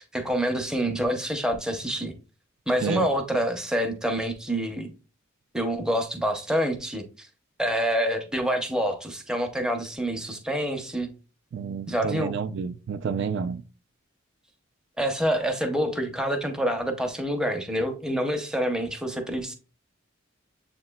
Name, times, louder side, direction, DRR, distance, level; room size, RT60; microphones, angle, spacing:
voice 1, 0.0-2.1 2.7-4.9 5.5-7.3 7.6-11.1 11.9-12.3 15.0-19.5, equal, 5° right, 0.6 m, -27 dB
voice 2, 11.5-13.6, right 6 dB, 60° right, 0.3 m, -30 dB
7.3 x 2.9 x 2.2 m
head